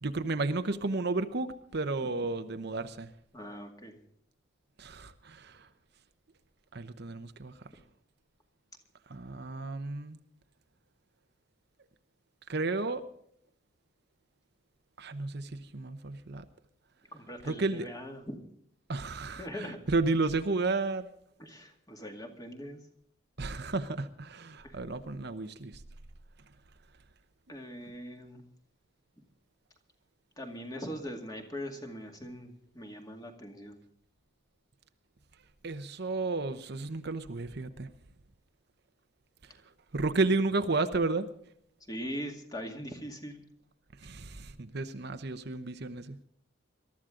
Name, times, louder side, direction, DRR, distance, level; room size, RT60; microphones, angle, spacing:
voice 1, 0.0-3.1 4.8-5.7 6.7-7.5 9.1-10.2 12.5-13.0 15.0-16.4 17.4-17.9 18.9-21.1 23.4-25.8 35.6-37.9 39.4-39.6 39.9-41.3 44.0-46.2, right 3 dB, 55° right, 0.9 m, -32 dB
voice 2, 3.3-4.0 17.1-18.4 19.3-19.8 21.4-22.8 24.6-24.8 27.5-28.4 30.4-33.8 41.9-43.4, equal, 20° left, 2.2 m, -41 dB
22.5 x 13.0 x 3.8 m
head